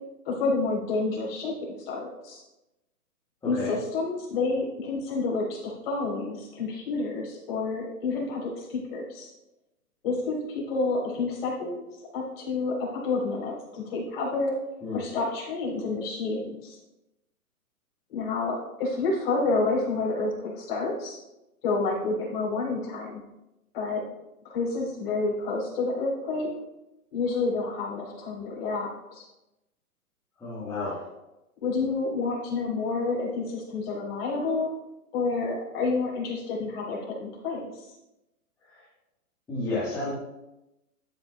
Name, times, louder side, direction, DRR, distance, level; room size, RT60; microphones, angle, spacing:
voice 1, 0.3-2.4 3.4-9.3 10.0-11.8 12.1-14.5 14.9-16.8 18.1-21.2 21.6-23.2 23.7-24.0 24.4-26.5 27.1-29.3 31.6-34.7 35.1-37.9, left 3 dB, 40° left, -3 dB, 3.8 m, -29 dB
voice 2, 3.4-3.7 14.8-15.1 30.4-31.1 38.7-38.8 39.5-40.1, left 2 dB, 5° left, -10 dB, 1.5 m, -31 dB
13.0 x 9.1 x 2.3 m, 0.93 s
hypercardioid pair, 155°, 45 cm